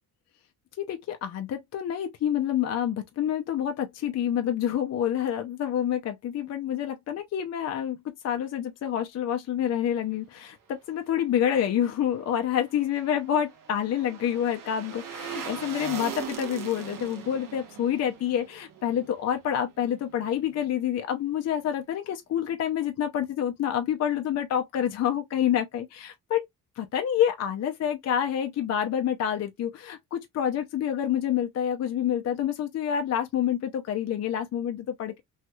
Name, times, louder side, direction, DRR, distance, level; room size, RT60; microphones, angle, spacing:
voice 1, 0.8-8.0 8.2-26.5 26.8-35.2, left 9 dB, 50° left, 0.6 m, -28 dB
sound 1, 12.5-19.7 20.0-20.1, right 7 dB, 70° right, 1.1 m, -40 dB
3.2 x 3.0 x 2.3 m
cardioid pair, 150°, 33 cm